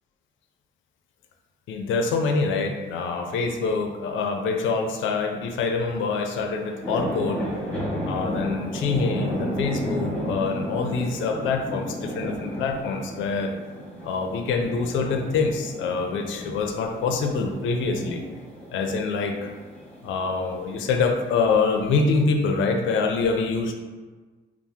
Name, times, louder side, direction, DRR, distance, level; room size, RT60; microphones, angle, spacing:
voice 1, 1.7-7.4 8.0-13.5 14.0-18.2 18.7-19.5 20.0-23.7, left 4 dB, 75° left, 3 dB, 0.4 m, -25 dB
sound 1, 5.9-22.2, equal, 5° left, 0.9 m, -34 dB
2.8 x 2.0 x 3.3 m, 1.3 s
cardioid pair, 90°, 20 cm